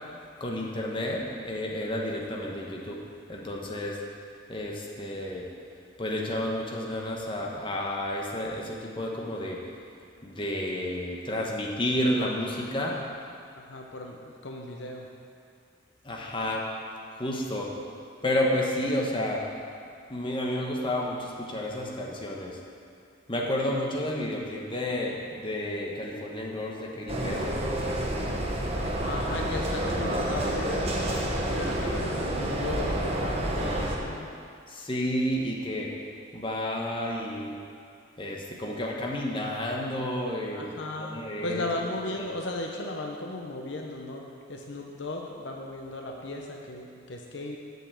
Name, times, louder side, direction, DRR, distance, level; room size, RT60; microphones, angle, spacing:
voice 1, 0.4-3.0 3.3-4.0 4.5-5.4 6.0-9.6 10.2-13.0 16.0-16.7 17.2-17.7 18.2-19.4 20.1-22.6 23.3-27.5 34.7-35.9 36.3-37.5 38.2-41.6, left 1 dB, 25° left, -2 dB, 1.2 m, -31 dB
voice 2, 13.7-15.1 29.0-30.9 31.6-34.3 40.5-47.6, left 2 dB, 60° left, 1 dB, 0.8 m, -36 dB
sound 1, 27.1-34.0, right 1 dB, 30° right, 1.1 m, -29 dB
8.1 x 7.0 x 7.6 m, 2.3 s
head